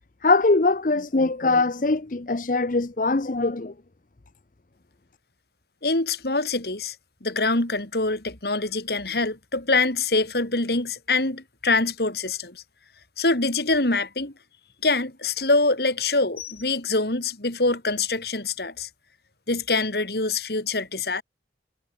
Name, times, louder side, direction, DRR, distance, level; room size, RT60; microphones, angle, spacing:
voice 1, 0.2-3.7, left 3 dB, 50° left, 0.8 m, -22 dB
voice 2, 5.8-6.9 7.2-12.6 13.2-14.3 14.8-18.9 19.5-21.2, left 3 dB, 65° left, 3.1 m, -24 dB
head